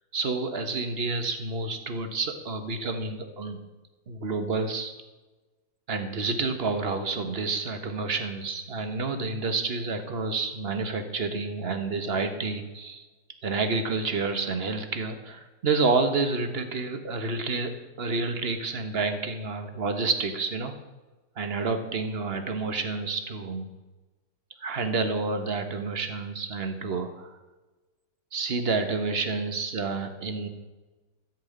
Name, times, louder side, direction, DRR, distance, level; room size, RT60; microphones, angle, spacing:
voice 1, 0.1-3.6 4.1-4.9 5.9-13.1 13.4-17.7 18.0-20.7 21.4-23.7 24.6-27.3 28.3-30.5, right 4 dB, 40° right, 7 dB, 1.2 m, -29 dB
13.5 x 5.5 x 8.6 m, 1.2 s
omnidirectional pair, 2.0 m